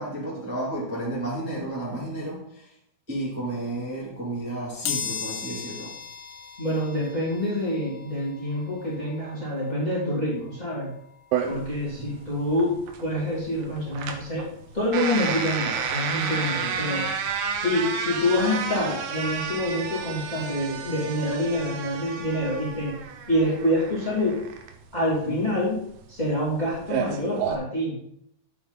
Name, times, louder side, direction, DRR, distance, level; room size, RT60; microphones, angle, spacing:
voice 1, 0.0-2.8 3.1-5.9 12.0-12.2 25.2-25.6, right 1 dB, 10° right, -7 dB, 0.9 m, -32 dB
sound 1, 4.9-15.5 16.0-16.1 17.2-17.3 17.6-19.7 20.1-22.7 23.0-23.2 23.5-23.6, left 8 dB, 80° left, 3.0 m, -40 dB
voice 2, 6.6-10.9 11.5-12.7 13.0-17.2 17.5-23.0 23.3-24.4 24.9-25.8 26.1-28.0, left 1 dB, 15° left, -6 dB, 1.5 m, -26 dB
sound 2, 11.3-27.6, right 6 dB, 80° right, 2.1 m, -31 dB
8.6 x 7.0 x 3.9 m, 0.73 s
omnidirectional pair, 5.1 m